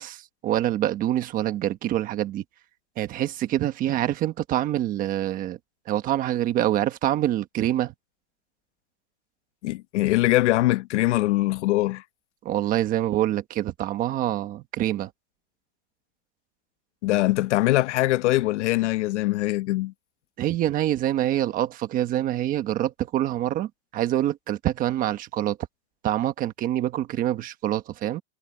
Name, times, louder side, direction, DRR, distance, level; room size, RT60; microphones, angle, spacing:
voice 1, 0.0-2.4 3.0-5.6 5.9-7.9 12.4-15.1 20.4-25.6 26.0-28.2, right 13 dB, 25° right, 1.2 m, -26 dB
voice 2, 9.6-12.0 17.0-19.9, left 17 dB, 75° left, 0.9 m, -22 dB
supercardioid pair, 170°, 36 cm